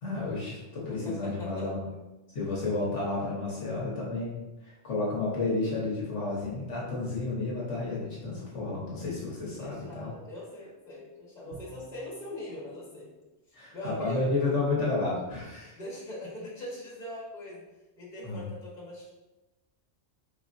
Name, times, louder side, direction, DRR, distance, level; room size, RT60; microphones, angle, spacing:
voice 1, 0.0-1.9 2.3-10.1 13.5-15.8 18.2-18.4, left 3 dB, 70° left, -5 dB, 1.4 m, -31 dB
voice 2, 0.9-1.7 9.6-13.1 13.7-14.3 15.7-17.6 18.0-19.1, left 1 dB, 35° left, -5 dB, 1.4 m, -41 dB
Bowed string instrument, 11.5-12.4, right 4 dB, 70° right, 1.1 m, -49 dB
4.7 x 4.0 x 2.5 m, 1.1 s
omnidirectional pair, 1.3 m